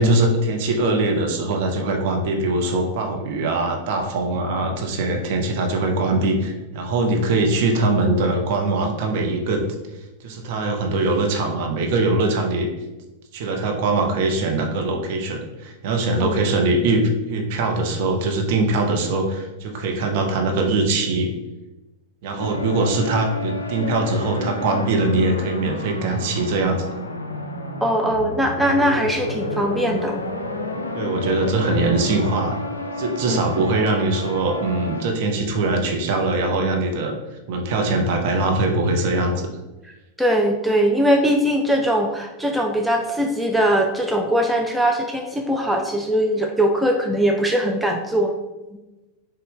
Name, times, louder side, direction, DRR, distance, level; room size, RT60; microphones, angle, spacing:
voice 1, 0.0-9.7 10.2-12.7 13.3-17.0 17.3-21.3 22.2-27.0 30.9-32.6 33.0-37.1 37.5-39.5, right 2 dB, 50° right, 2 dB, 0.6 m, -22 dB
sound 1, 22.4-35.0, left 1 dB, 80° left, 0.3 m, -30 dB
voice 2, 27.8-30.2 33.3-33.7 40.2-48.3, equal, 5° right, 1 dB, 0.3 m, -21 dB
3.8 x 2.2 x 3.6 m, 1.1 s
figure-of-eight pair, 90°, 0 cm